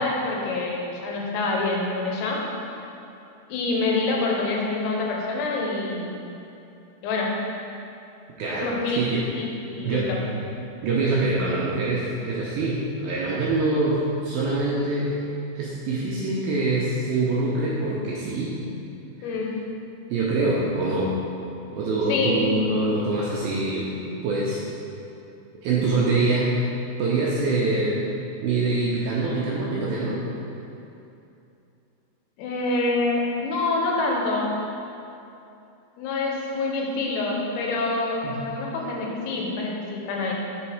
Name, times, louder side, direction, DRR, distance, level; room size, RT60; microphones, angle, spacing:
voice 1, 0.0-2.4 3.5-6.2 7.0-7.4 8.6-9.0 9.4-10.2 19.2-19.6 22.1-22.4 32.4-34.6 36.0-40.3, left 3 dB, 90° left, -2 dB, 2.8 m, -26 dB
voice 2, 8.4-9.2 9.8-10.4 10.8-15.2 15.6-18.6 20.1-21.2 21.7-23.9 24.2-24.7 25.6-26.6 27.0-28.1 28.4-30.2 38.2-38.4, right 2 dB, 80° right, -5 dB, 2.2 m, -24 dB
6.2 x 3.9 x 4.4 m, 2.8 s
omnidirectional pair, 4.7 m